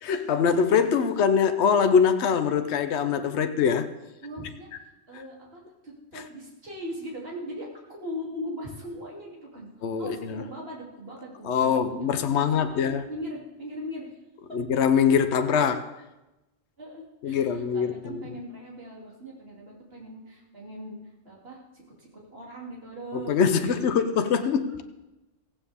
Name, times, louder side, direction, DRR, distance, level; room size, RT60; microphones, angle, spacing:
voice 1, 0.0-3.9 9.8-10.4 11.4-13.0 14.5-15.9 17.2-18.2 23.1-24.8, left 6 dB, 65° left, 9 dB, 1.1 m, -23 dB
voice 2, 4.2-4.7 5.1-14.1 16.8-21.0 21.2-23.8, equal, 50° right, -3 dB, 3.1 m, -40 dB
16.0 x 16.0 x 3.6 m, 1.0 s
omnidirectional pair, 1.3 m